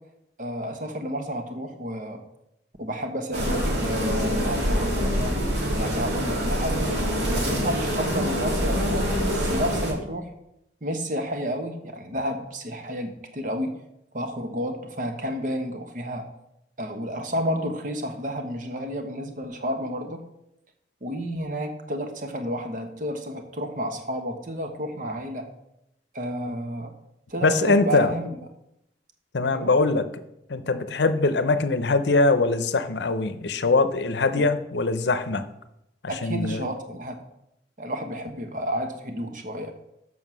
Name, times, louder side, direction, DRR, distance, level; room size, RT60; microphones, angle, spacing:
voice 1, 0.4-2.2 2.8-6.9 7.3-10.3 10.8-13.8 14.1-16.3 16.8-20.2 21.0-25.4 26.1-26.9 27.3-28.3 29.5-29.7 34.3-34.4 36.1-37.2 37.8-39.7, equal, 45° right, 6 dB, 1.1 m, -31 dB
sound 1, 3.3-9.9, equal, 75° right, 2.8 m, -25 dB
voice 2, 27.4-28.1 29.3-30.1 30.5-35.4 36.0-36.7, left 3 dB, 75° left, 12 dB, 0.7 m, -22 dB
7.4 x 6.1 x 6.1 m, 0.83 s
head